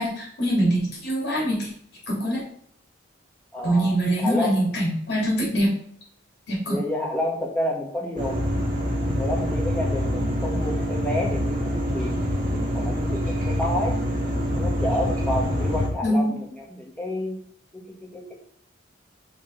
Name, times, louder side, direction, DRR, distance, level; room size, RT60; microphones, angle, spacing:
voice 1, 0.0-1.7 2.1-2.4 3.6-5.8 6.5-6.8 16.0-16.3, equal, 55° left, -4 dB, 2.7 m, -23 dB
voice 2, 3.5-4.6 6.7-8.6 9.1-14.0 14.5-17.4 17.7-18.3, left 1 dB, 5° left, -2 dB, 1.4 m, -30 dB
sound 1, 8.2-15.9, equal, 40° right, 1.8 m, -25 dB
5.9 x 4.4 x 4.4 m, 0.64 s
head